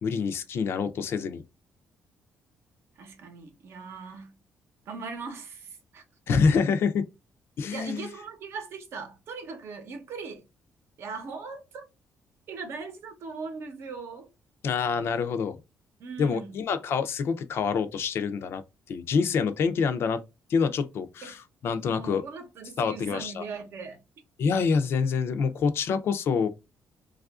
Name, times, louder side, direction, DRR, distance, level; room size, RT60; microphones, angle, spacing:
voice 1, 0.0-1.4 6.3-7.0 7.6-8.1 14.6-15.6 16.2-18.6 18.9-20.2 20.5-22.2 22.8-23.4 24.4-26.5, left 5 dB, 55° left, 0.4 m, -26 dB
voice 2, 3.0-4.4 4.9-6.0 7.7-10.5 11.0-11.8 12.5-14.3 16.0-16.6 21.2-21.4 21.8-24.0, right 4 dB, 55° right, 0.8 m, -39 dB
3.4 x 2.4 x 2.3 m
cardioid pair, 165°, 5 cm